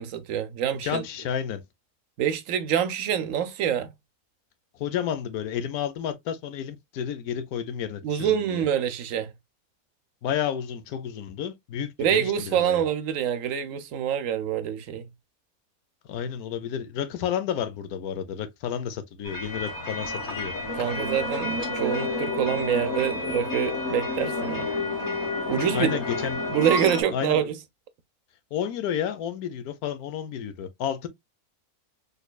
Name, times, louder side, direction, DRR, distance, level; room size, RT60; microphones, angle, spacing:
voice 1, 0.0-1.0 2.2-3.9 8.0-9.3 12.0-15.0 20.7-24.7 25.5-26.0 26.5-27.6, right 9 dB, 70° right, 0.9 m, -26 dB
voice 2, 0.8-1.6 4.7-8.6 10.2-12.8 16.1-20.5 25.7-26.4 27.1-27.5 28.5-31.1, left 9 dB, 85° left, 1.1 m, -31 dB
sound 1, 19.2-27.0, left 2 dB, 35° left, 1.5 m, -30 dB
4.1 x 3.2 x 2.2 m
omnidirectional pair, 1.6 m